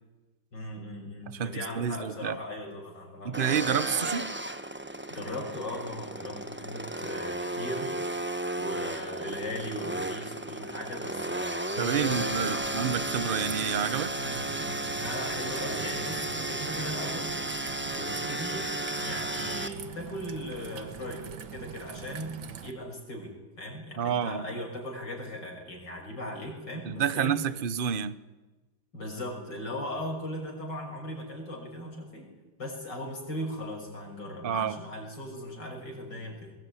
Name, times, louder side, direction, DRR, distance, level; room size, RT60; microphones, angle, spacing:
voice 1, 0.5-3.4 5.1-8.0 8.6-12.7 14.1-17.3 17.9-18.7 19.0-21.3 21.5-22.3 22.6-27.4 28.9-32.3 32.6-36.5, left 1 dB, 60° left, 6.8 m, -38 dB
voice 2, 1.3-2.4 3.2-4.3 11.8-14.1 24.0-24.5 26.8-28.2 34.4-34.8, right 8 dB, 45° right, 0.7 m, -29 dB
sound 1, 3.3-19.7, right 1 dB, 10° right, 0.7 m, -34 dB
Raindrop / Trickle dribble, 12.0-22.7, right 8 dB, 70° right, 2.1 m, -43 dB
22.0 x 20.0 x 9.8 m
omnidirectional pair, 2.2 m